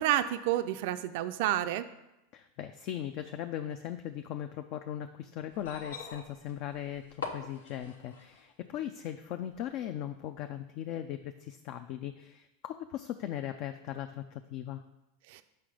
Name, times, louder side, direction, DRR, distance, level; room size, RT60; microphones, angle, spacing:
voice 1, 0.0-1.8 15.3-15.4, right 13 dB, 65° right, 11 dB, 0.3 m, -29 dB
voice 2, 2.3-14.8, left 11 dB, 55° left, 8 dB, 0.4 m, -39 dB
sound 1, 5.5-8.5 9.6-9.7, left 4 dB, 85° left, 0.8 m, -43 dB
5.8 x 5.2 x 5.0 m, 0.91 s
hypercardioid pair, 100°, 0 cm